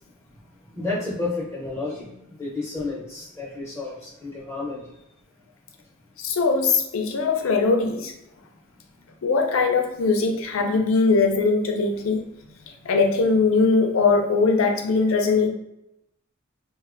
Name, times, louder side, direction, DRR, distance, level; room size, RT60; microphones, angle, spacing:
voice 1, 0.6-4.9 12.7-12.8, left 3 dB, 15° left, -8 dB, 0.7 m, -31 dB
voice 2, 6.2-8.1 9.2-12.2 12.7-15.5, left 4 dB, 85° left, 4 dB, 0.4 m, -21 dB
3.1 x 2.1 x 2.5 m, 0.85 s
head